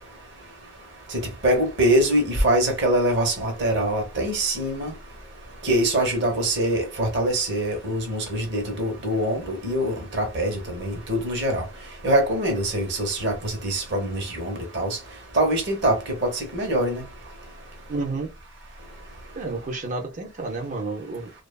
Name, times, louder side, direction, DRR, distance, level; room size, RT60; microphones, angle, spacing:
voice 1, 1.4-4.9 5.6-11.6 12.0-15.0 15.3-17.0, right 1 dB, 60° right, 0.9 m, -24 dB
voice 2, 17.9-18.3 19.4-21.3, right 3 dB, 40° right, 0.5 m, -30 dB
2.7 x 2.3 x 2.2 m
head